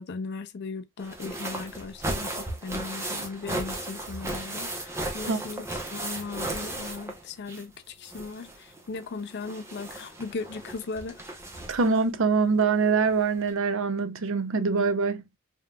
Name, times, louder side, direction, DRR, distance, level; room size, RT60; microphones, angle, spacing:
voice 1, 0.0-11.2, left 4 dB, 50° left, 0.4 m, -37 dB
sound 1, 1.0-7.8 8.0-12.0 13.1-13.2 13.5-13.6, right 1 dB, 10° right, 0.9 m, -36 dB
voice 2, 11.7-15.2, right 4 dB, 60° right, 0.6 m, -24 dB
5.2 x 2.9 x 2.3 m
head